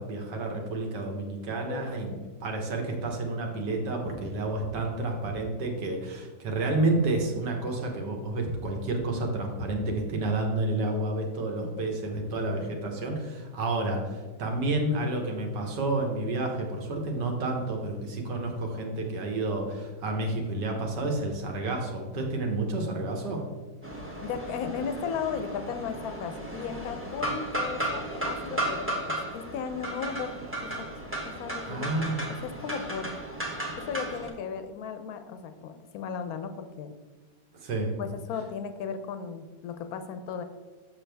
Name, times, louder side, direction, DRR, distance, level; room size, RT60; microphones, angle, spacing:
voice 1, 0.0-2.1 2.4-23.4 31.7-32.2 37.5-37.9, right 2 dB, 70° right, 2 dB, 1.6 m, -30 dB
voice 2, 1.7-2.2 11.6-11.9 24.2-30.3 30.6-30.7 31.4-31.9 32.4-33.1 33.8-36.9 38.0-40.4, left 6 dB, 65° left, 9 dB, 0.9 m, -36 dB
sound 1, 23.8-34.3, right 1 dB, 10° right, 0.7 m, -34 dB
7.1 x 6.0 x 3.4 m, 1.3 s
omnidirectional pair, 2.0 m